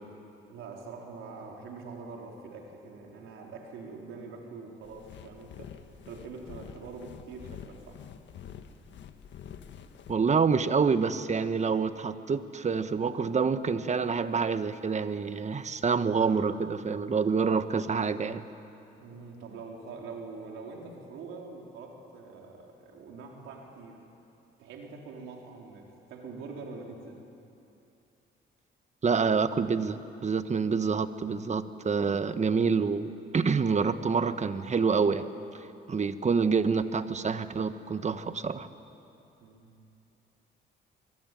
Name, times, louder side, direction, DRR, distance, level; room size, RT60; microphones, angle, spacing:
voice 1, 0.5-5.8 6.1-8.0 19.0-24.0 24.6-27.2 39.4-39.7, right 4 dB, 90° right, 0 dB, 4.2 m, -44 dB
sound 1, 4.8-10.1, left 8 dB, 65° left, 1.6 m, -47 dB
voice 2, 10.1-18.4 29.0-35.3 35.9-38.7, right 5 dB, 35° right, 11 dB, 1.3 m, -27 dB
25.5 x 22.0 x 9.3 m, 2.8 s
cardioid pair, 90°, 20 cm